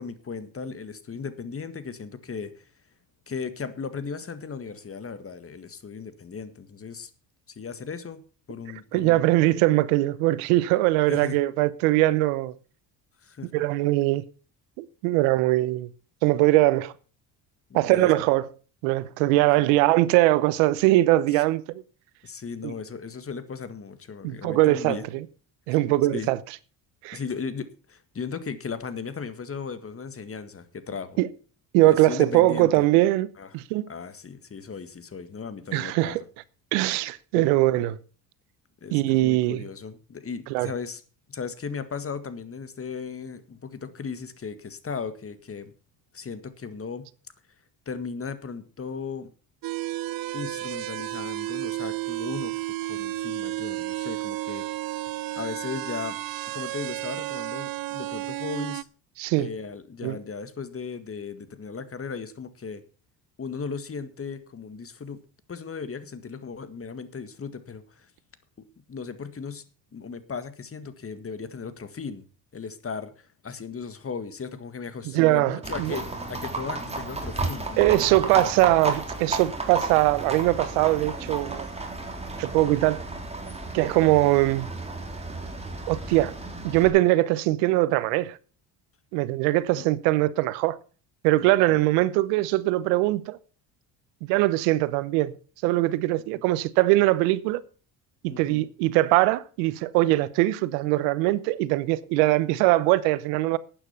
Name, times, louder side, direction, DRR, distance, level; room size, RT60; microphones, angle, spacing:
voice 1, 0.0-2.7 3.3-7.1 7.5-8.2 8.5-9.2 9.5-9.6 11.1-11.4 13.2-13.6 17.7-18.1 19.3-19.7 21.3-21.4 22.2-25.1 25.7-25.8 26.1-26.3 27.1-31.2 31.8-32.8 33.4-33.5 33.9-36.2 37.3-37.5 38.8-41.0 41.3-45.7 46.1-47.1 47.8-49.3 50.3-54.6 55.3-56.2 56.5-58.9 59.3-62.8 63.4-65.2 65.5-68.1 68.9-69.6 69.9-72.2 72.5-78.6 89.8-89.9 91.7-91.8 96.3-96.4 98.3-98.7, left 5 dB, 30° left, 1.8 m, -36 dB
voice 2, 8.9-12.5 13.5-14.2 14.8-15.9 16.2-16.9 17.7-18.5 18.8-21.8 22.6-22.7 24.2-25.2 25.7-26.4 27.0-27.2 31.2-31.3 31.7-33.9 35.7-36.2 36.7-38.0 38.9-39.6 40.5-40.7 59.2-59.5 60.0-60.2 75.0-76.0 77.8-81.7 82.4-83.0 83.7-84.7 85.9-86.3 86.6-88.4 89.1-90.8 91.2-93.4 94.3-95.4 95.6-97.6 98.2-103.6, right 17 dB, 90° right, 0.9 m, -22 dB
sound 1, 49.6-58.8, right 16 dB, 55° right, 0.6 m, -32 dB
Livestock farm animals working animals, 75.6-86.9, right 2 dB, 15° right, 3.6 m, -33 dB
12.0 x 9.0 x 5.8 m
supercardioid pair, 80°, 42 cm